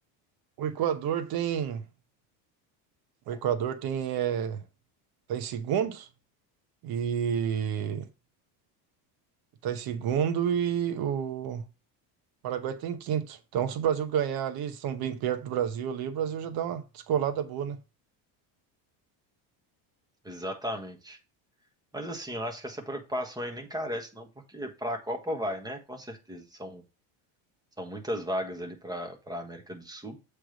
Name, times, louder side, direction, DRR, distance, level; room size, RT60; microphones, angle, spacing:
voice 1, 0.6-1.8 3.3-4.6 5.3-6.1 6.8-8.1 9.6-11.6 12.4-17.8, right 9 dB, 50° right, 1.0 m, -29 dB
voice 2, 20.2-21.2 21.9-26.8 27.8-30.2, equal, 10° right, 1.3 m, -35 dB
7.6 x 3.4 x 5.1 m
cardioid pair, 135°, 47 cm